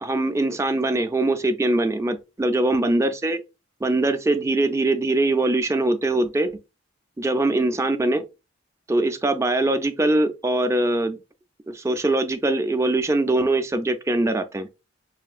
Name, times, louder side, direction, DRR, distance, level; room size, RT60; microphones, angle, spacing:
voice 1, 0.0-3.4 3.8-6.5 7.2-8.2 8.9-11.2 11.7-14.7, right 2 dB, 15° right, 0.3 m, -22 dB
5.4 x 2.4 x 2.4 m
head